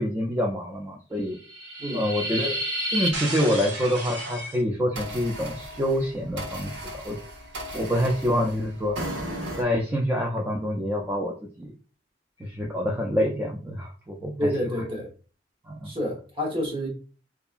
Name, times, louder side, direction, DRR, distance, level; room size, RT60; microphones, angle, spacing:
voice 1, 0.0-1.4 1.9-2.6 2.9-7.2 7.7-9.0 9.6-11.7 12.4-14.5 15.7-15.9, equal, 15° right, 0.3 m, -26 dB
sound 1, 1.3-4.6 4.9-9.6, right 1 dB, 85° right, 0.9 m, -33 dB
voice 2, 14.4-15.1 15.8-16.9, equal, 30° right, 1.0 m, -28 dB
2.8 x 2.3 x 2.3 m
head